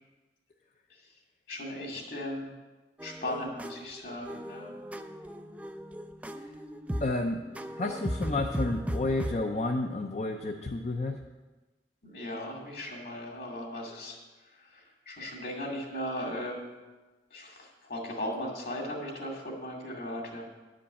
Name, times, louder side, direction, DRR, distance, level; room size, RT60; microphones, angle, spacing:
voice 1, 1.5-2.5 3.0-4.7 12.0-14.2 14.6-16.7 17.3-20.4, left 1 dB, 55° left, 0 dB, 2.4 m, -37 dB
sound 1, 3.0-9.3, equal, 10° right, 0.4 m, -37 dB
voice 2, 7.0-7.4 7.8-11.2, left 2 dB, 40° left, 2 dB, 0.6 m, -31 dB
11.0 x 5.2 x 8.4 m, 1.2 s
head